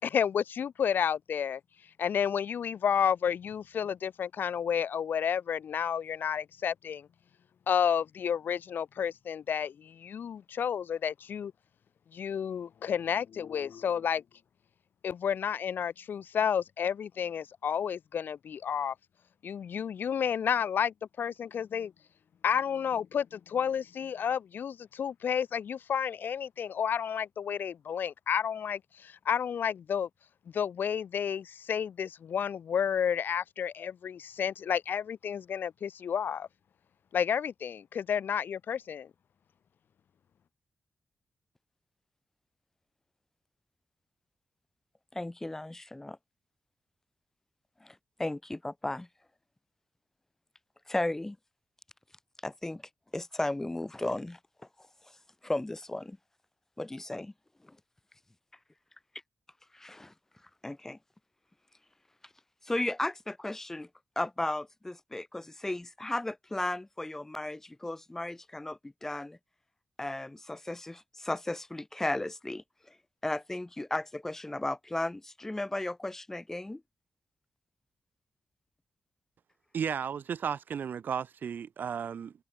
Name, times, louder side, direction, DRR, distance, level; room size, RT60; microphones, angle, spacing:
voice 1, 0.0-1.6 2.0-7.1 7.7-11.5 12.1-14.2 15.0-18.9 19.4-21.9 22.4-30.1 30.5-36.5 37.1-39.1, left 8 dB, 70° left, 1.8 m, -31 dB
voice 2, 45.1-46.2 47.8-49.1 50.9-51.4 52.4-52.8 53.1-54.4 55.4-56.2 56.8-57.3 57.6-57.8 59.7-60.1 60.6-61.0 62.6-63.9 64.1-69.4 70.0-72.9 73.2-76.8, left 2 dB, 10° left, 1.5 m, -35 dB
voice 3, 79.7-82.3, right 7 dB, 65° right, 1.5 m, -34 dB
wide cardioid pair, 160°, 3 cm